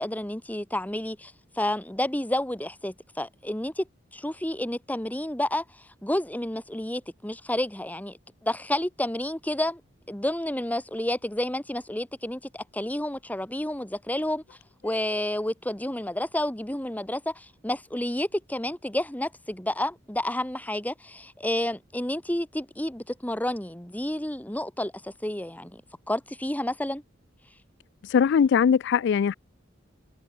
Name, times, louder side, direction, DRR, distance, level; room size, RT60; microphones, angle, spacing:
voice 1, 0.0-3.9 4.1-5.6 6.0-8.2 8.4-9.8 10.1-14.4 14.8-25.8 26.1-27.0, left 1 dB, 10° left, 1.8 m, -30 dB
voice 2, 28.0-29.3, left 7 dB, 60° left, 0.3 m, -21 dB
head